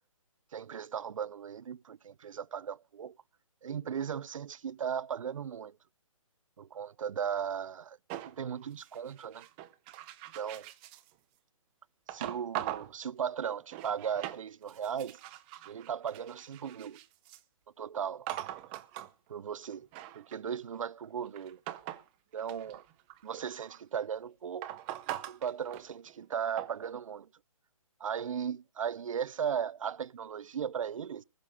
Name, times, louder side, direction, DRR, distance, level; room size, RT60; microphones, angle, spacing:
voice 1, 0.5-3.2 3.6-5.8 6.6-8.0 8.3-9.5 10.3-10.7 12.1-15.2 15.7-17.0 17.8-18.3 19.3-19.9 20.1-21.6 22.3-22.8 23.2-24.7 25.3-27.3 28.0-31.2, right 8 dB, 65° right, 0.5 m, -37 dB
sound 1, 8.1-11.1 12.1-12.9 13.4-14.4 14.7-17.4 18.3-19.1 19.6-22.1 22.4-24.0 24.6-26.3 26.6-26.8, right 14 dB, 15° right, 0.7 m, -42 dB
20.0 x 6.7 x 5.3 m
hypercardioid pair, 155°, 18 cm